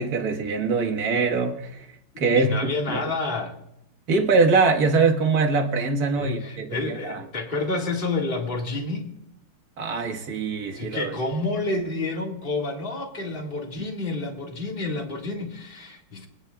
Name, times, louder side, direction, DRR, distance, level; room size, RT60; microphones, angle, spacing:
voice 1, 0.0-1.9 2.2-2.6 2.9-3.0 4.1-7.2 9.8-11.1, right 4 dB, 50° right, 3 dB, 1.6 m, -23 dB
voice 2, 2.3-3.5 6.2-9.1 10.7-16.3, left 3 dB, 25° left, 1 dB, 1.8 m, -29 dB
25.0 x 9.7 x 2.3 m, 0.78 s
omnidirectional pair, 2.3 m